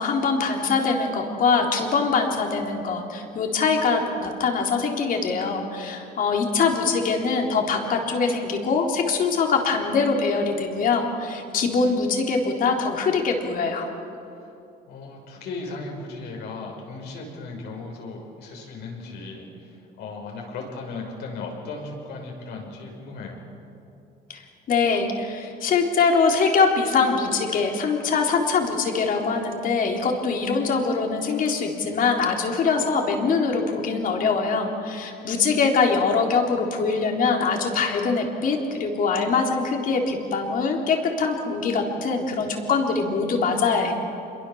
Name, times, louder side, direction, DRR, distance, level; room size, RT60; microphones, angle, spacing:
voice 1, 0.0-13.9 24.3-43.9, left 4 dB, 55° left, 1 dB, 3.8 m, -23 dB
voice 2, 14.9-23.4, left 3 dB, 75° left, 0 dB, 6.4 m, -36 dB
27.0 x 22.5 x 7.2 m, 2.7 s
cardioid pair, 110°, 17 cm